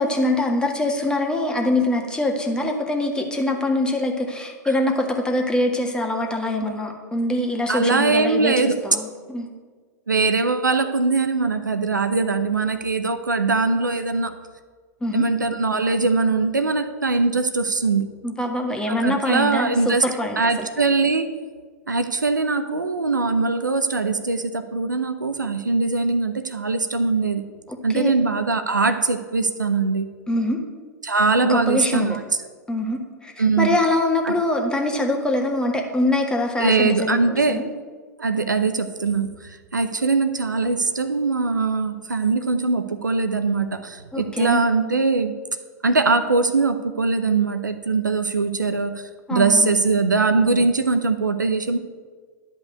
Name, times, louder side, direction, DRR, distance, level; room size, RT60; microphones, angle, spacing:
voice 1, 0.0-8.5 8.8-9.5 15.0-15.2 18.2-20.7 27.9-28.1 30.3-30.6 31.4-32.2 32.7-37.2 37.5-37.7 44.1-44.6 49.3-49.8 50.1-50.2, left 1 dB, 10° left, 2 dB, 1.7 m, -24 dB
voice 2, 7.7-8.8 10.1-14.3 15.1-18.1 18.9-20.0 20.4-21.3 21.9-27.4 27.8-30.1 31.0-32.2 33.4-33.8 34.2-34.3 36.6-37.6 38.2-45.3 45.8-51.8, right 3 dB, 90° right, 9 dB, 0.8 m, -21 dB
11.0 x 5.4 x 8.3 m, 1.5 s
figure-of-eight pair, 100°, 10 cm